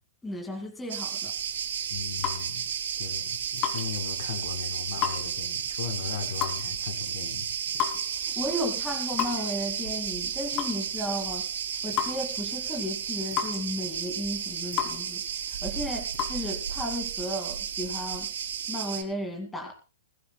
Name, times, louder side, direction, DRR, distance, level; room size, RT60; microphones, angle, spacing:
voice 1, 0.2-1.3 8.1-11.5 11.8-18.3 18.7-19.7, equal, 5° left, 2 dB, 2.3 m, -34 dB
Cricket, 0.9-19.0, right 8 dB, 70° right, 4.0 m, -33 dB
sound 1, 1.4-16.3, left 11 dB, 25° left, 2.5 m, -37 dB
voice 2, 1.9-2.7 3.0-7.5, left 7 dB, 50° left, 4 dB, 4.2 m, -37 dB
20.5 x 17.0 x 2.3 m, 0.32 s
hypercardioid pair, 170°, 0 cm